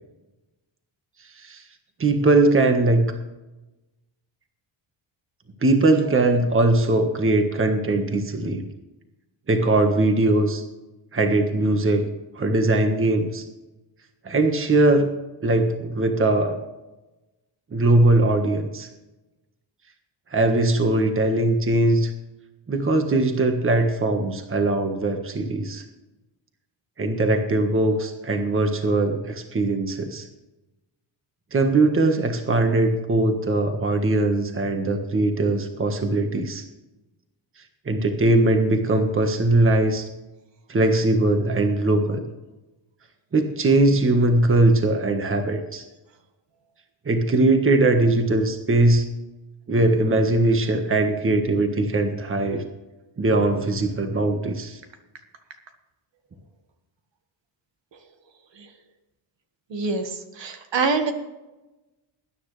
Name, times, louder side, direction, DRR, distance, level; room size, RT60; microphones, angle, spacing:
voice 1, 2.0-3.1 5.6-8.6 9.5-10.6 11.1-12.1 12.3-13.4 14.2-15.1 15.4-16.6 17.7-18.9 20.3-22.1 22.7-25.8 27.0-30.3 31.5-36.6 37.8-40.1 40.7-42.2 43.3-45.8 47.0-49.1 49.7-52.6 53.2-54.8, right 2 dB, 25° right, 6 dB, 1.5 m, -20 dB
voice 2, 59.7-61.1, right 4 dB, 65° right, 6 dB, 1.8 m, -25 dB
20.0 x 10.0 x 3.3 m, 1.0 s
cardioid pair, 120°, 48 cm